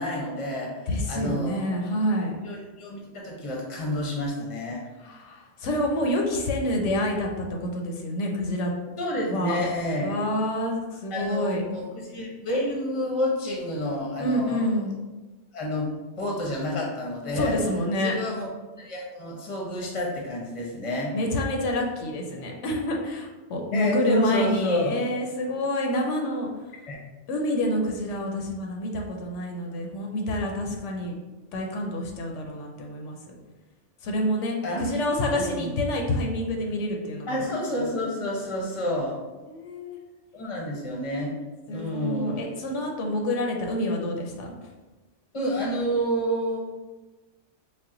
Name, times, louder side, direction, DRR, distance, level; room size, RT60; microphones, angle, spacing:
voice 1, 0.0-0.8 1.1-1.8 2.4-4.9 9.0-10.1 11.1-14.9 15.5-17.6 18.0-18.5 18.8-21.1 23.7-24.9 26.9-27.0 34.6-34.8 35.3-35.7 37.3-39.2 40.3-41.3 41.7-42.5 45.3-46.6, equal, 30° left, -2 dB, 0.8 m, -29 dB
voice 2, 0.9-2.4 5.0-8.7 9.3-9.6 10.0-11.6 14.2-15.0 17.3-18.2 21.1-26.5 27.3-31.2 31.5-33.2 34.0-37.4 39.5-40.0 41.7-44.5, left 1 dB, 80° left, 1 dB, 1.0 m, -27 dB
4.2 x 2.2 x 3.7 m, 1.2 s
omnidirectional pair, 1.2 m